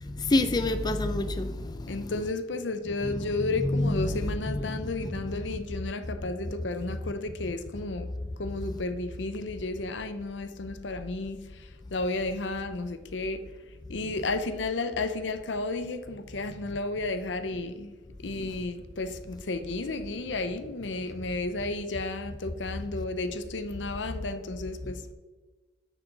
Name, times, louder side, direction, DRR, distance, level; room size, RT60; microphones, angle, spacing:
voice 1, 0.0-2.1 3.0-3.1 3.6-4.3 4.6-5.1 18.3-18.5, left 2 dB, 25° left, 0.4 m, -28 dB
voice 2, 1.9-8.1 8.4-13.4 13.9-17.9 18.2-25.1, left 2 dB, 80° left, 0.7 m, -33 dB
9.8 x 6.3 x 3.9 m
head